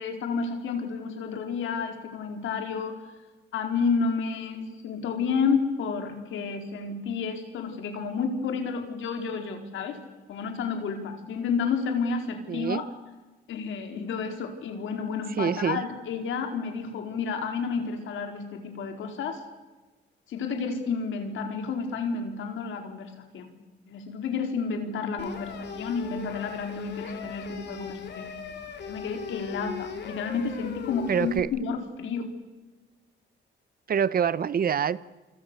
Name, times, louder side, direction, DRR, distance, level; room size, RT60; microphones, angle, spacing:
voice 1, 0.0-3.0 3.5-10.0 10.3-12.8 13.5-19.4 20.3-23.5 23.9-28.4 28.9-32.3, left 5 dB, 80° left, 4 dB, 4.4 m, -30 dB
voice 2, 12.5-12.8 15.4-15.9 31.1-31.5 33.9-35.0, right 7 dB, 50° right, 17 dB, 0.9 m, -25 dB
sound 1, 25.2-31.4, left 5 dB, 60° left, 3.9 m, -39 dB
27.5 x 26.0 x 7.0 m, 1.2 s
cardioid pair, 90°, 20 cm